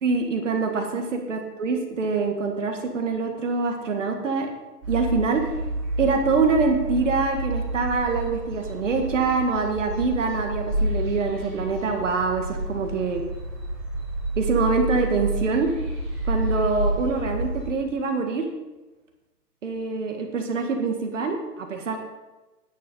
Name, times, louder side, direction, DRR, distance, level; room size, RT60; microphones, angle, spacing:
voice 1, 0.0-4.5 4.9-5.5 6.0-13.2 14.4-15.7 16.3-18.4 19.6-22.0, right 4 dB, 50° right, 4 dB, 1.8 m, -25 dB
sound 1, 4.8-17.7, right 1 dB, 20° right, 3.7 m, -29 dB
10.0 x 8.5 x 5.4 m, 1.1 s
hypercardioid pair, 175°, 49 cm